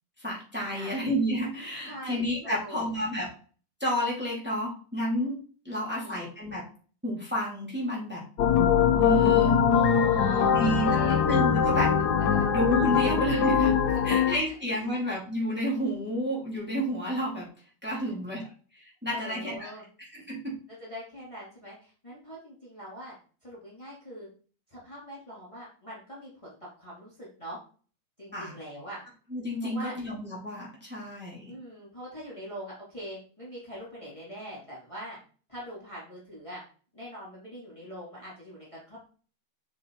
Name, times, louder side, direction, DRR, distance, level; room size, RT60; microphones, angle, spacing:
voice 1, 0.2-3.3 3.8-5.4 5.6-6.6 7.0-8.2 9.0-9.6 10.5-11.9 12.5-17.5 17.8-18.5 18.7-19.7 20.0-20.6 28.3-28.5 29.3-31.5, equal, 5° right, -5 dB, 3.0 m, -30 dB
voice 2, 0.7-1.0 1.9-2.9 5.7-6.3 9.7-11.2 12.2-12.4 13.9-14.2 14.9-15.0 18.0-18.1 18.4-18.5 19.1-19.8 20.1-20.2 20.7-23.1 23.4-24.3 24.7-27.6 28.2-29.0 29.6-29.9 31.5-35.2 35.5-36.6 36.9-39.0, equal, 15° left, -6 dB, 2.8 m, -42 dB
sound 1, 8.4-14.4, left 7 dB, 65° left, 1.4 m, -22 dB
7.2 x 5.2 x 4.7 m, 0.41 s
omnidirectional pair, 1.9 m